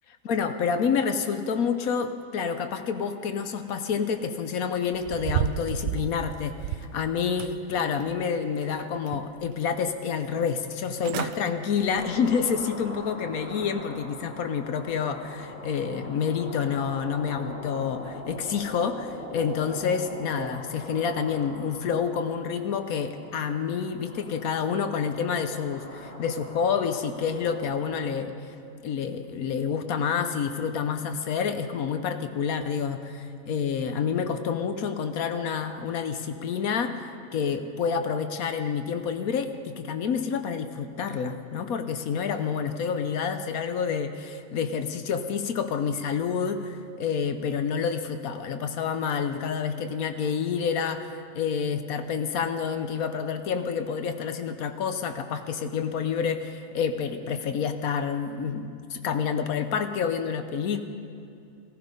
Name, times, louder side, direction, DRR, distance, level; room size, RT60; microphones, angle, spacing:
voice 1, 0.2-28.5 28.8-60.8, left 6 dB, 65° left, 9 dB, 1.2 m, -28 dB
sound 1, 4.9-7.0 7.4-8.2 8.6-9.5 9.9-10.0 10.7-10.8 11.0-11.4 11.8-12.1 12.6-12.7, right 11 dB, 70° right, 0.8 m, -32 dB
sound 2, 12.0-28.1, left 1 dB, 40° left, 1.9 m, -42 dB
16.5 x 14.5 x 5.3 m, 2.5 s
omnidirectional pair, 1.7 m